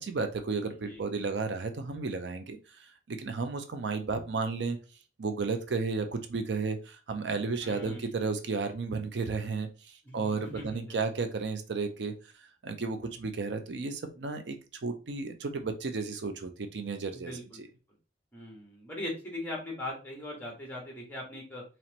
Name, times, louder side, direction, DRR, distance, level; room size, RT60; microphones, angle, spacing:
voice 1, 0.0-4.8 5.2-12.1 12.6-14.6 14.8-17.3 17.6-17.7, right 4 dB, 70° right, 7 dB, 0.5 m, -33 dB
voice 2, 0.7-1.0 7.6-8.2 10.0-11.0 17.1-17.6 18.3-21.6, left 1 dB, 10° left, -1 dB, 1.5 m, -40 dB
4.3 x 3.0 x 3.0 m, 0.33 s
head